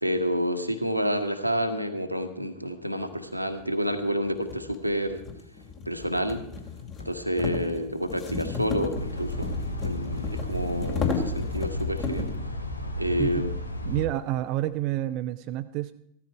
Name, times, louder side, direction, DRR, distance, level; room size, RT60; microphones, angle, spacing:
voice 1, 0.0-5.2 5.8-6.5 7.0-9.5 9.8-12.3 13.0-13.5, equal, 90° right, 5 dB, 1.4 m, -29 dB
sound 1, 3.6-3.7 4.4-12.4, left 5 dB, 30° left, 2.5 m, -33 dB
sound 2, 8.9-14.1, left 1 dB, 80° left, 1.3 m, -33 dB
voice 2, 13.8-15.9, right 14 dB, 40° right, 10 dB, 0.5 m, -29 dB
15.0 x 13.0 x 4.7 m, 0.75 s
figure-of-eight pair, 90°, 0 cm